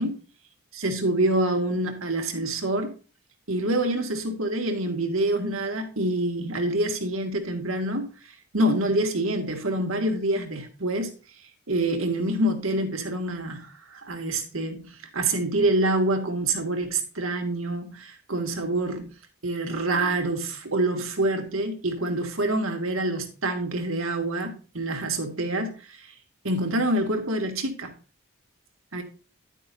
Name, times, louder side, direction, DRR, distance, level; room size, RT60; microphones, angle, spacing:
voice 1, 0.7-2.9 3.5-8.1 8.5-11.1 11.7-19.1 19.4-26.1 26.4-27.9 28.9-29.0, right 1 dB, 75° right, 2.0 m, -26 dB
11.0 x 9.1 x 2.7 m
head